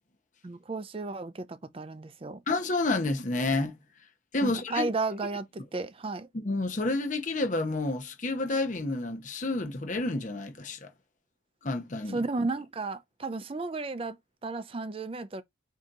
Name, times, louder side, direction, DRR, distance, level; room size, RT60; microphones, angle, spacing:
voice 1, 0.4-2.4 4.4-6.3 12.1-14.2 14.4-15.4, right 3 dB, 25° right, 0.4 m, -33 dB
voice 2, 2.5-3.7 4.3-4.9 6.3-10.9 11.6-12.2, left 2 dB, 40° left, 0.7 m, -29 dB
4.8 x 2.7 x 3.8 m
head